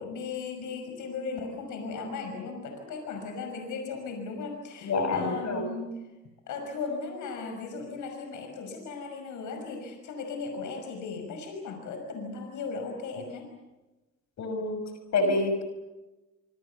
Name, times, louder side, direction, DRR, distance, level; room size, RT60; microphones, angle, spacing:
voice 1, 0.0-5.9 6.5-13.5, left 4 dB, 80° left, 4 dB, 6.1 m, -37 dB
voice 2, 4.8-5.6 14.4-14.8 15.1-15.6, left 2 dB, 65° left, 7 dB, 6.2 m, -27 dB
25.5 x 25.5 x 7.0 m, 1.1 s
cardioid pair, 90°, 30 cm